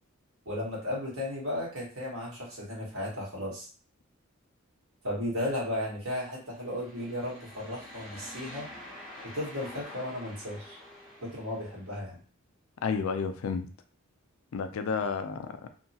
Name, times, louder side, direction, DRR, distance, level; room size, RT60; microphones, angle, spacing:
voice 1, 0.4-3.7 5.0-8.7 9.2-10.8 11.2-12.2, left 1 dB, 80° right, -5 dB, 1.5 m, -35 dB
sound 1, 6.5-11.9, left 1 dB, 5° left, 0.9 m, -47 dB
voice 2, 12.8-13.7 14.5-15.7, left 5 dB, 85° left, 8 dB, 0.4 m, -31 dB
2.8 x 2.3 x 2.7 m, 0.40 s
head